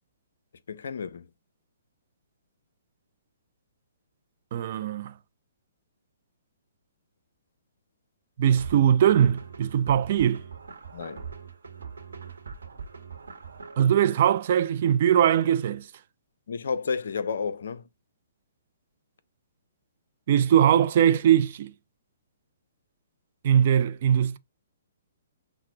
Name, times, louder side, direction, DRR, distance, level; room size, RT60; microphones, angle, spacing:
voice 1, 0.7-1.3 10.9-11.2 16.5-17.9, left 5 dB, 60° left, 0.4 m, -31 dB
voice 2, 4.5-5.1 8.4-10.4 13.8-15.9 20.3-21.7 23.4-24.4, right 9 dB, 45° right, 0.3 m, -21 dB
sound 1, 8.6-13.8, right 6 dB, 70° right, 0.9 m, -42 dB
5.7 x 2.0 x 2.6 m
figure-of-eight pair, 120°, 0 cm